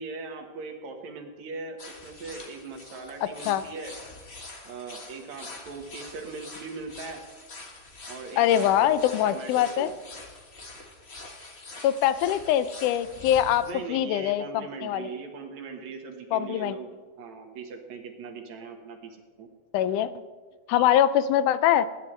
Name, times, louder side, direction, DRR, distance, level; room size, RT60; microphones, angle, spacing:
voice 1, 0.0-3.9 4.6-7.2 8.1-9.0 9.2-9.9 13.6-16.9 17.2-19.5, right 4 dB, 65° right, 3 dB, 2.7 m, -40 dB
sound 1, 1.8-13.7, left 3 dB, 35° left, 1.0 m, -45 dB
voice 2, 8.4-9.9 11.8-15.1 16.3-16.8 19.7-20.1 20.7-21.9, left 11 dB, 85° left, 14 dB, 2.1 m, -23 dB
22.0 x 10.5 x 3.3 m, 1.5 s
omnidirectional pair, 3.6 m